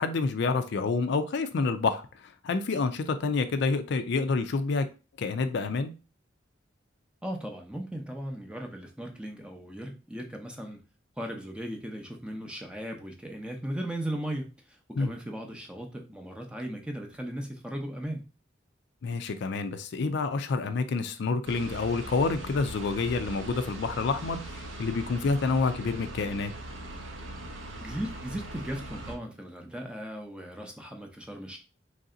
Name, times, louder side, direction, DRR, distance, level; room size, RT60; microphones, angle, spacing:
voice 1, 0.0-2.1 2.4-4.9 5.2-5.9 15.0-15.1 19.0-26.5, left 4 dB, 60° left, 0.4 m, -28 dB
voice 2, 7.2-10.8 11.2-14.5 15.0-18.2 27.8-31.6, right 1 dB, 5° right, 0.6 m, -37 dB
sound 1, 21.5-29.2, right 1 dB, 80° right, 0.8 m, -41 dB
3.2 x 2.7 x 3.7 m
head